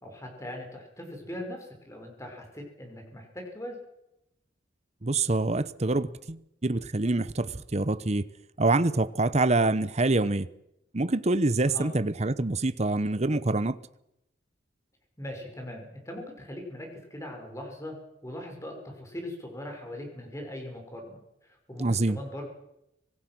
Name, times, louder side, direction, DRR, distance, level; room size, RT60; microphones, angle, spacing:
voice 1, 0.0-3.8 11.7-11.9 15.2-17.9 18.2-21.2 21.7-22.5, left 1 dB, 15° left, 5.7 m, -40 dB
voice 2, 5.0-8.2 8.6-10.5 10.9-13.8 21.8-22.2, right 2 dB, 35° right, 0.9 m, -26 dB
25.5 x 17.5 x 6.2 m
head